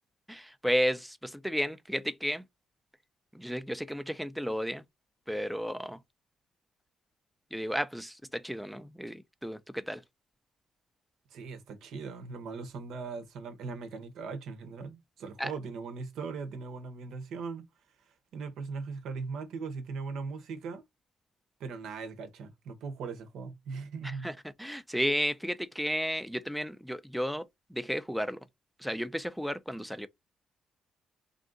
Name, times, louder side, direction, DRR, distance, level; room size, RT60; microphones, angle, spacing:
voice 1, 0.3-2.5 3.3-4.8 5.3-6.0 7.5-10.0 15.4-15.5 24.0-28.4 28.8-30.1, equal, ahead, 0.4 m, -33 dB
voice 2, 11.3-17.6 18.3-20.8 21.6-24.3, right 4 dB, 80° right, 0.8 m, -39 dB
3.5 x 2.5 x 3.7 m
cardioid pair, 90°, 0 cm